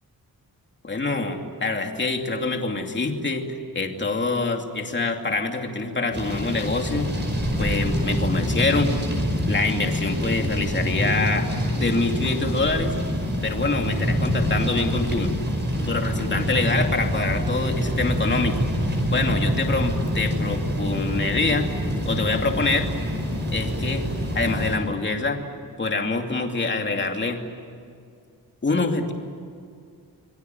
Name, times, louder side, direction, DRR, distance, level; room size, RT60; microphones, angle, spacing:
voice 1, 0.8-3.5 3.7-7.1 7.6-8.9 9.5-11.5 11.8-12.9 13.4-15.3 15.8-21.7 22.0-22.9 23.5-24.0 24.3-25.4 25.8-27.4 28.6-29.1, left 3 dB, 30° left, 3 dB, 2.7 m, -25 dB
sound 1, 6.1-24.8, equal, 30° right, 5.5 m, -26 dB
25.5 x 22.5 x 9.4 m, 2.3 s
wide cardioid pair, 160°, 36 cm